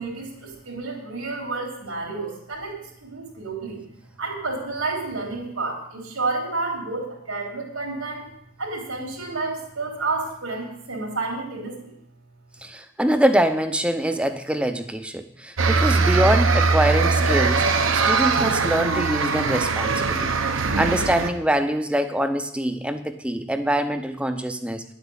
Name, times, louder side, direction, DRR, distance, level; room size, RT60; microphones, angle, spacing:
voice 1, 0.0-3.8 4.2-8.2 8.6-11.9, right 3 dB, 80° right, 0 dB, 3.7 m, -30 dB
voice 2, 12.6-20.3 20.8-24.8, right 1 dB, 5° right, 9 dB, 0.6 m, -24 dB
sound 1, 15.6-21.3, right 4 dB, 60° right, 0.9 m, -21 dB
10.5 x 8.2 x 7.2 m, 0.73 s
head